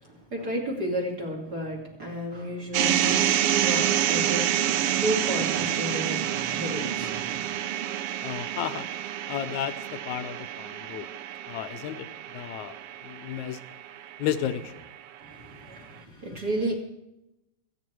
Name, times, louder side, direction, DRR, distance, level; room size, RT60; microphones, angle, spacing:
voice 1, 0.0-7.5 15.2-16.7, equal, 35° right, 1 dB, 2.8 m, -32 dB
sound 1, 2.7-14.9, right 11 dB, 85° right, 1.3 m, -28 dB
voice 2, 8.2-8.9 9.3-11.1 11.5-12.1 12.3-12.8 13.0-13.6 14.2-14.9, left 10 dB, 80° left, 11 dB, 2.1 m, -33 dB
27.0 x 9.2 x 4.6 m, 0.89 s
omnidirectional pair, 3.5 m